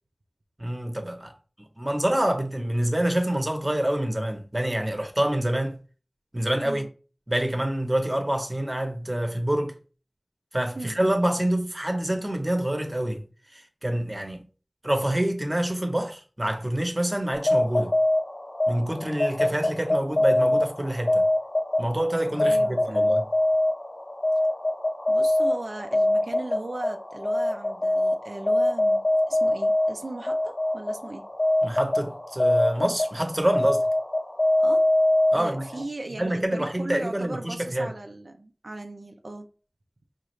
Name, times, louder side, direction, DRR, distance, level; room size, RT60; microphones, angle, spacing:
voice 1, 0.6-1.3 1.8-5.8 6.3-6.8 7.3-9.7 10.5-13.2 13.5-14.5 14.8-17.9 18.7-21.2 21.8-23.2 31.6-33.9 35.3-35.8 36.1-37.9, right 1 dB, 30° right, 0.8 m, -26 dB
sound 1, 17.3-35.8, left 1 dB, 60° left, 0.8 m, -24 dB
voice 2, 22.4-23.1 25.1-31.2 34.6-34.9 35.3-39.5, right 2 dB, 90° right, 0.4 m, -37 dB
5.0 x 2.4 x 3.1 m
wide cardioid pair, 40°, 0 cm